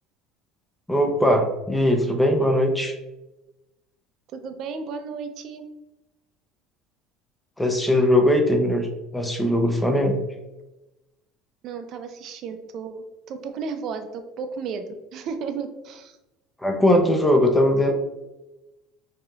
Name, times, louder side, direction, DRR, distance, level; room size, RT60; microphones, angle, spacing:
voice 1, 0.9-2.9 7.6-10.2 16.6-17.9, left 1 dB, 5° left, 3 dB, 0.6 m, -20 dB
voice 2, 4.3-5.6 11.6-16.2, right 5 dB, 50° right, 7 dB, 0.5 m, -34 dB
4.9 x 2.8 x 2.4 m, 1.0 s
supercardioid pair, 120°, 0 cm